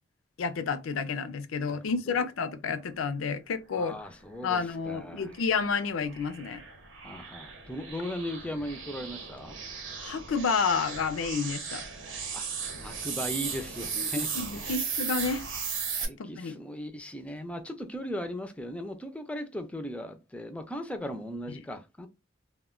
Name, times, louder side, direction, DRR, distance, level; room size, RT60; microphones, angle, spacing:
voice 1, 0.4-3.9 4.4-6.6 10.0-11.8 14.0-15.5 16.2-16.5, left 5 dB, 90° left, 0.4 m, -30 dB
voice 2, 3.7-5.3 7.0-9.6 12.3-14.8 15.9-22.1, equal, 5° left, 0.3 m, -38 dB
sound 1, 4.5-16.1, right 6 dB, 70° right, 0.7 m, -37 dB
2.1 x 2.1 x 3.5 m
head